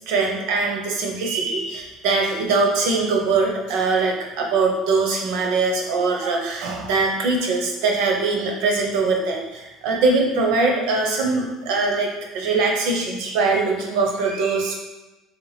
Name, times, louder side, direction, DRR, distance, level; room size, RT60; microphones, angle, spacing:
voice 1, 0.1-14.8, right 3 dB, 80° right, 1 dB, 0.7 m, -22 dB
3.3 x 2.9 x 3.2 m, 1.1 s
cardioid pair, 150°, 0 cm